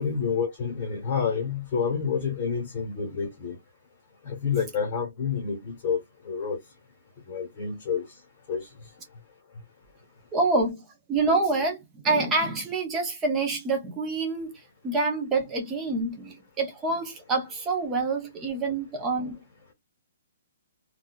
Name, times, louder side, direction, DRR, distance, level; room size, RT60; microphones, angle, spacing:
voice 1, 0.0-3.5 4.3-6.0 6.3-6.6 7.3-8.0 8.5-8.6, left 6 dB, 20° left, 1.0 m, -28 dB
voice 2, 10.3-14.5 14.8-19.4, right 3 dB, 10° right, 0.6 m, -27 dB
4.0 x 2.3 x 2.2 m
hypercardioid pair, 180°, 0 cm